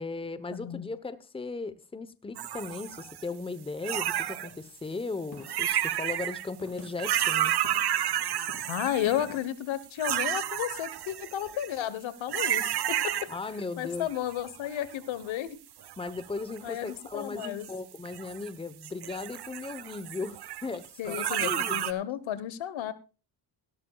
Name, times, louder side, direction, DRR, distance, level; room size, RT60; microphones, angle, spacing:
voice 1, 0.0-7.5 13.3-14.1 16.0-21.9, left 3 dB, 10° left, 0.9 m, -37 dB
voice 2, 0.5-0.9 8.7-13.0 13.8-15.6 16.6-17.7 21.0-22.9, left 11 dB, 75° left, 1.3 m, -33 dB
sound 1, 2.4-3.2 3.8-4.5 5.4-6.4 6.8-9.4 10.0-11.8 12.3-13.6 13.9-14.9 15.8-16.9 17.4-18.5 18.8-21.9, right 11 dB, 55° right, 1.0 m, -31 dB
sound 2, 5.3-5.5 6.6-6.9 7.6-7.8 8.4-8.6 9.1-9.4, left 5 dB, 50° left, 5.9 m, -45 dB
17.0 x 12.0 x 2.3 m
cardioid pair, 95°, 47 cm